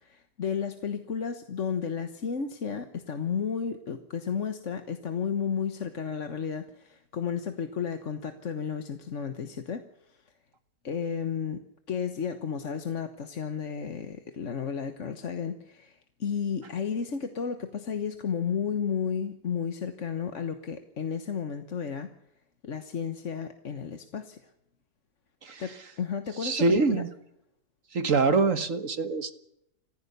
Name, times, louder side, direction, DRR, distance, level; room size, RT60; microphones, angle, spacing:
voice 1, 0.0-10.2 10.8-11.6 11.9-22.1 22.6-24.4 25.6-27.0, left 6 dB, 50° left, 8 dB, 1.5 m, -33 dB
voice 2, 26.4-27.1 27.9-29.3, right 4 dB, 50° right, 10 dB, 1.7 m, -24 dB
27.5 x 15.0 x 6.8 m, 0.80 s
omnidirectional pair, 1.8 m